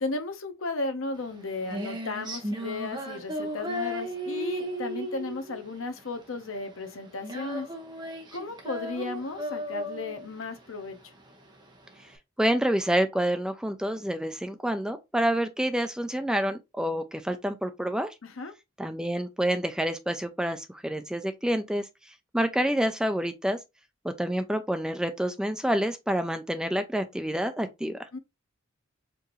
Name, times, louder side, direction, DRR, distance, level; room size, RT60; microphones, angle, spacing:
voice 1, 0.0-7.7 8.3-11.1 18.2-18.5 28.1-28.2, left 3 dB, 85° left, 0.8 m, -35 dB
Female singing, 1.2-12.1, equal, 20° right, 0.8 m, -36 dB
voice 2, 12.4-18.1 18.8-21.9 22.3-23.6 24.0-28.0, right 1 dB, 5° right, 0.4 m, -28 dB
4.6 x 2.6 x 3.0 m
head